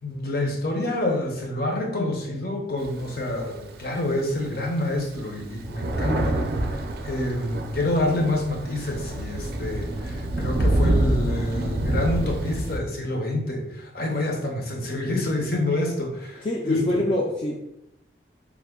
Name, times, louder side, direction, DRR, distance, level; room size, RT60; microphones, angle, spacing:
voice 1, 0.0-17.0, left 1 dB, 55° left, 1 dB, 0.7 m, -27 dB
Thunder, 2.8-4.1 4.6-4.7 5.0-12.8, right 1 dB, 55° right, 0.4 m, -26 dB
voice 2, 16.4-17.6, left 1 dB, 30° left, -2 dB, 0.3 m, -24 dB
3.4 x 2.1 x 3.5 m, 0.81 s
head